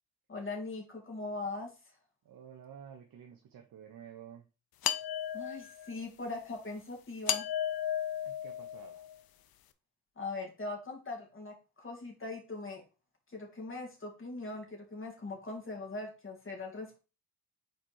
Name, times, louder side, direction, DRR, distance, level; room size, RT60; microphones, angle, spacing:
voice 1, 0.3-1.7 5.3-7.5 10.2-12.8 13.3-17.0, left 3 dB, 30° left, 1 dB, 2.5 m, -40 dB
voice 2, 2.2-4.5 8.2-9.1, right 8 dB, 55° right, 3 dB, 1.1 m, -51 dB
sound 1, 4.8-5.9 7.3-9.1, left 10 dB, 60° left, 0.7 m, -34 dB
4.8 x 4.3 x 4.6 m, 0.31 s
supercardioid pair, 65°, 41 cm